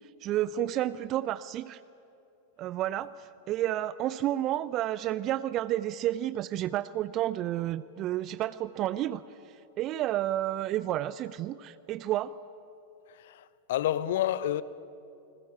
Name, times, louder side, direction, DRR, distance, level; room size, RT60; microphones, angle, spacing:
voice 1, 0.2-1.8 2.6-9.2 9.8-12.4, right 13 dB, 35° right, 0.5 m, -30 dB
voice 2, 13.2-14.6, left 12 dB, 55° left, 0.9 m, -29 dB
28.0 x 21.0 x 8.6 m
figure-of-eight pair, 90°, 0 cm